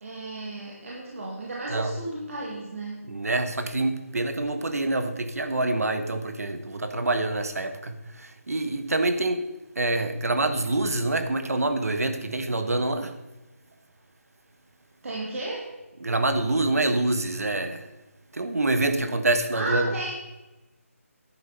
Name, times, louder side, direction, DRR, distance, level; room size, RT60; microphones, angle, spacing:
voice 1, 0.0-3.0 15.0-15.7 19.5-20.2, right 2 dB, 60° right, -3 dB, 2.2 m, -33 dB
voice 2, 3.1-9.4 9.7-13.1 16.0-17.9 18.3-19.9, right 2 dB, 80° right, 8 dB, 1.3 m, -26 dB
10.5 x 8.6 x 4.1 m, 1.1 s
figure-of-eight pair, 155°, 8 cm